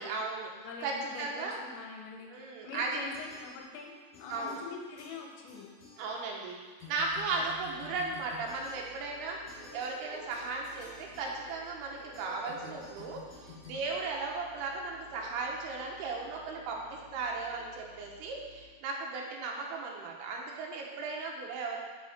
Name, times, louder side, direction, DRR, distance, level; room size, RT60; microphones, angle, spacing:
voice 1, 0.0-0.5 0.8-1.6 2.3-3.0 4.3-4.6 6.0-6.6 6.9-21.8, right 3 dB, 75° right, -1 dB, 2.6 m, -36 dB
voice 2, 0.6-3.9 4.2-5.7, left 4 dB, 80° left, 1 dB, 2.9 m, -44 dB
sound 1, 3.1-3.9 4.1-6.5 6.8-14.7, left 5 dB, 45° left, 3.3 m, -52 dB
sound 2, 6.9-18.7, left 1 dB, 45° right, 3.0 m, -54 dB
6.7 x 6.6 x 4.2 m, 1.4 s
omnidirectional pair, 5.4 m